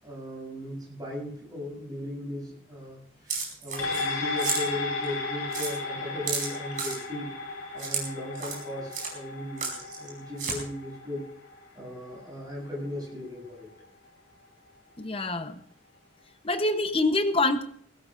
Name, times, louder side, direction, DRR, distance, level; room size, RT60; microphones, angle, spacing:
voice 1, 0.0-7.3 7.7-11.3 11.7-13.7, left 1 dB, 20° right, -3 dB, 7.7 m, -37 dB
sound 1, 3.3-4.1 4.4-4.6 5.0-5.1 5.5-5.7 6.3-7.0 7.8-8.0 8.3-8.6 8.9-9.1 9.6-10.1 10.4-10.6, right 5 dB, 40° right, 4.9 m, -32 dB
sound 2, 3.8-12.5 12.9-13.0, left 3 dB, 85° left, 2.7 m, -35 dB
voice 2, 15.0-15.5 16.4-17.6, left 2 dB, 25° left, 9 dB, 0.9 m, -25 dB
21.5 x 16.5 x 2.6 m, 0.62 s
head